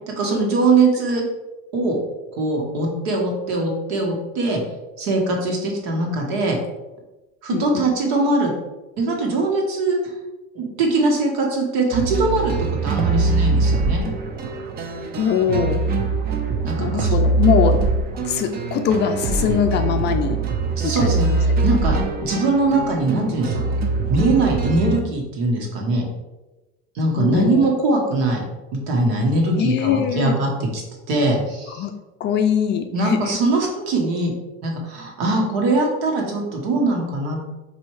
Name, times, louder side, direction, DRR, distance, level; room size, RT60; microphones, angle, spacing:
voice 1, 0.1-1.2 1.7-1.9 2.3-4.6 5.0-6.6 7.4-8.5 9.0-10.0 10.5-12.5 12.8-14.0 16.6-17.1 20.8-23.6 24.1-26.0 26.9-28.4 28.7-30.8 31.1-31.8 32.9-34.3 34.6-37.5, right 2 dB, 75° right, 0 dB, 1.4 m, -21 dB
voice 2, 7.5-7.9 15.2-15.8 16.8-17.8 18.2-20.4 20.8-21.2 27.2-27.7 29.6-30.3 31.7-31.9 32.2-33.4, left 7 dB, 35° left, 6 dB, 0.4 m, -22 dB
sound 1, 11.9-25.0, right 3 dB, 30° right, 0.5 m, -22 dB
4.2 x 2.7 x 4.7 m, 1.1 s
supercardioid pair, 130°, 31 cm